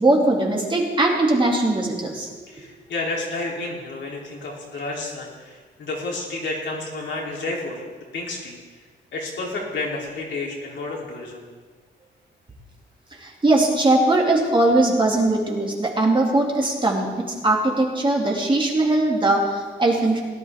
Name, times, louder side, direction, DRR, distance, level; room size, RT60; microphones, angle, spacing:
voice 1, 0.0-2.3 13.2-20.2, right 2 dB, 25° right, -2 dB, 2.7 m, -20 dB
voice 2, 2.5-7.9 8.1-8.6 9.1-11.4, left 2 dB, 70° left, -3 dB, 3.7 m, -30 dB
18.0 x 11.0 x 3.7 m, 1.4 s
cardioid pair, 95°, 19 cm